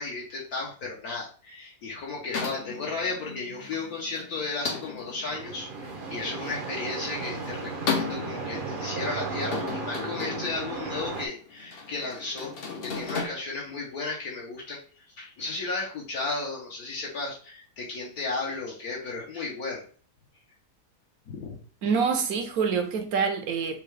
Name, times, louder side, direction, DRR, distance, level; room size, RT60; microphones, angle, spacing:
voice 1, 0.0-12.5 12.8-14.8 15.2-19.8 21.3-21.6, left 3 dB, 70° left, 1.4 m, -34 dB
sound 1, 2.3-13.3, left 5 dB, 50° left, 0.7 m, -36 dB
sound 2, 5.3-11.3, right 4 dB, 50° right, 0.7 m, -35 dB
voice 2, 21.8-23.8, right 5 dB, 70° right, 1.1 m, -26 dB
6.6 x 2.3 x 3.2 m
omnidirectional pair, 1.7 m